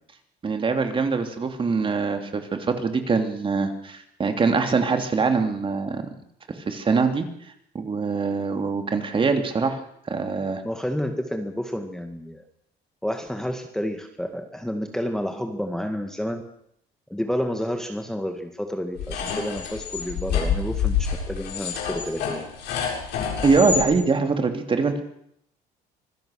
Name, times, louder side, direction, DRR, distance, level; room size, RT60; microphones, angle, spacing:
voice 1, 0.4-6.1 6.5-7.2 7.7-9.8 10.1-10.6 23.4-25.0, right 4 dB, 30° right, 6 dB, 3.0 m, -23 dB
voice 2, 10.6-12.4 13.0-16.4 17.1-22.4, equal, 5° left, 5 dB, 1.9 m, -30 dB
sound 1, 19.0-23.9, left 7 dB, 85° left, 7.0 m, -27 dB
25.5 x 16.0 x 6.6 m, 0.72 s
cardioid pair, 110°, 17 cm